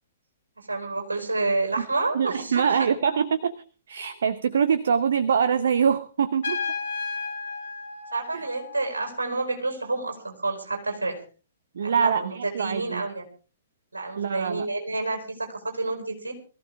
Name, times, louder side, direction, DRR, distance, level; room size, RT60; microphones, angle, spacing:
voice 1, 0.6-2.9 8.1-11.2 11.8-13.3 13.9-16.3, right 3 dB, 75° right, 4 dB, 4.8 m, -29 dB
voice 2, 2.1-3.5 3.9-6.6 8.3-8.5 11.7-13.1 14.2-14.7, right 7 dB, 55° right, 15 dB, 0.8 m, -24 dB
Trumpet, 6.4-9.1, left 4 dB, 60° left, 5.1 m, -33 dB
21.5 x 15.0 x 3.6 m, 0.37 s
figure-of-eight pair, 115°, 0 cm